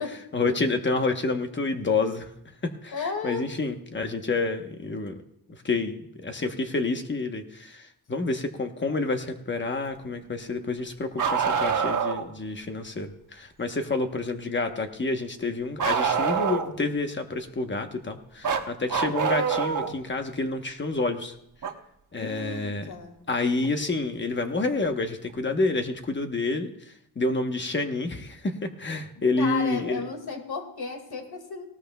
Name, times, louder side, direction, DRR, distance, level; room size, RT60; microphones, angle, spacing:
voice 1, 0.3-2.3 2.6-5.2 5.5-21.4 22.1-22.9 23.3-26.7 27.2-30.0, left 3 dB, 30° left, 5 dB, 1.0 m, -28 dB
voice 2, 2.9-3.5 22.1-23.2 29.4-31.6, left 5 dB, 70° left, 5 dB, 2.1 m, -34 dB
Bark, 11.2-12.3 15.8-16.8 18.4-19.9 21.6-21.7 23.6-23.7 24.8-24.9, right 6 dB, 50° right, 1.1 m, -25 dB
19.0 x 17.5 x 2.3 m, 0.74 s
wide cardioid pair, 170°, 39 cm